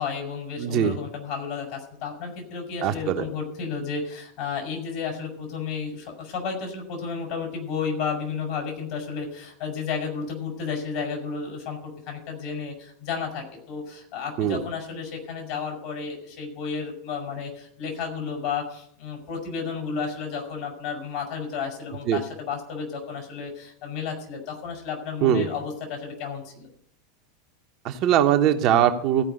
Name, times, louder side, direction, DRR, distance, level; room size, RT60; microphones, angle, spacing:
voice 1, 0.0-26.7, left 5 dB, 55° left, 2 dB, 5.1 m, -32 dB
voice 2, 0.6-0.9 2.8-3.2 14.4-14.6 22.1-22.2 25.2-25.5 27.8-29.3, right 10 dB, 45° right, 5 dB, 1.1 m, -21 dB
16.0 x 5.4 x 8.0 m, 0.66 s
figure-of-eight pair, 85°, 0 cm